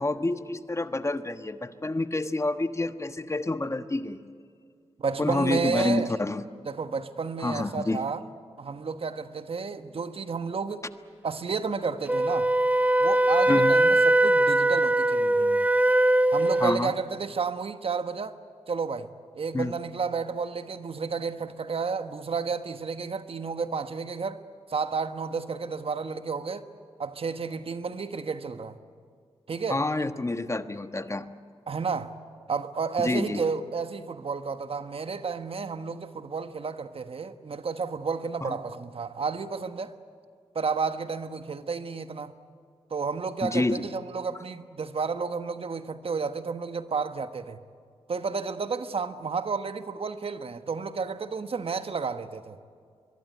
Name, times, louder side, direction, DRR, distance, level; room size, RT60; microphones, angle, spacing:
voice 1, 0.0-4.2 5.2-6.4 7.4-8.0 13.5-13.8 16.6-16.9 19.5-19.7 29.7-31.3 33.0-33.4 38.4-38.6 43.4-43.8, left 2 dB, 25° left, 1.3 m, -28 dB
voice 2, 5.0-6.1 6.6-8.2 8.6-10.9 11.2-12.5 13.0-15.7 16.3-18.3 18.7-19.1 19.3-24.4 24.7-26.7 27.0-28.8 29.5-29.8 31.7-32.1 32.5-39.9 40.5-42.3 42.9-47.6 48.1-52.6, right 5 dB, 60° right, 1.3 m, -31 dB
Wind instrument woodwind instrument, 12.1-16.8, right 1 dB, 15° right, 0.7 m, -21 dB
23.0 x 22.5 x 9.5 m
cardioid pair, 50°, 11 cm